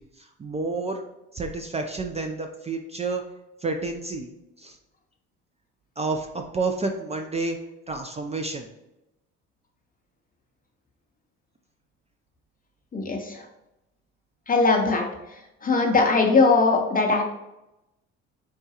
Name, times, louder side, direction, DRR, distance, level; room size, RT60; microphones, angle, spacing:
voice 1, 0.2-1.0 1.3-3.2 3.6-4.8 6.0-7.6 7.9-8.7, right 3 dB, 20° right, 4 dB, 0.3 m, -30 dB
voice 2, 12.9-13.4 14.5-15.1 15.6-17.2, left 3 dB, 25° left, 2 dB, 0.6 m, -20 dB
4.7 x 2.2 x 2.8 m, 0.92 s
hypercardioid pair, 60°, 35 cm